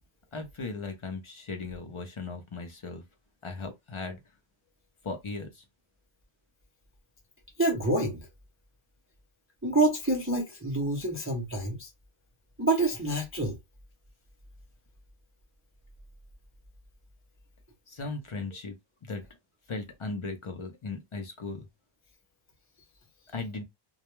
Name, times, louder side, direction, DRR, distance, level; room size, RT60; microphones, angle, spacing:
voice 1, 0.3-3.0 3.4-4.2 5.0-5.6 17.9-18.8 19.0-19.2 19.7-21.7 23.3-23.6, left 3 dB, 50° left, 0.4 m, -37 dB
voice 2, 7.6-8.2 9.6-11.9 12.6-13.6, right 2 dB, 20° right, 0.4 m, -27 dB
2.2 x 2.1 x 2.9 m
omnidirectional pair, 1.1 m